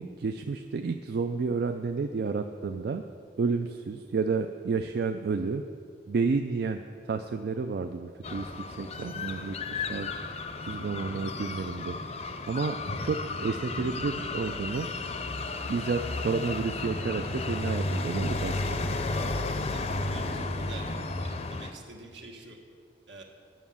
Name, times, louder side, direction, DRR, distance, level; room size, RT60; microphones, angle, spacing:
voice 1, 0.0-3.0 3.4-5.6 6.1-14.9 15.7-18.8 20.2-20.3, right 4 dB, 60° right, 7 dB, 0.3 m, -31 dB
sound 1, 8.2-21.7, left 2 dB, 35° left, 0.5 m, -33 dB
voice 2, 19.4-22.6 23.1-23.2, right 2 dB, 80° right, 1 dB, 1.4 m, -47 dB
9.4 x 6.1 x 7.0 m, 2.2 s
head